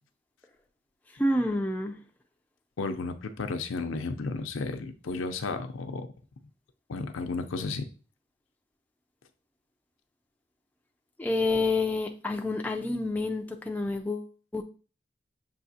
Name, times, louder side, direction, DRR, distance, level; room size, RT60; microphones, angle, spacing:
voice 1, 1.2-2.0 11.2-14.6, left 2 dB, 10° left, 0.3 m, -28 dB
voice 2, 2.8-6.1 6.9-7.9, left 3 dB, 85° left, 0.5 m, -33 dB
6.9 x 2.8 x 2.7 m
head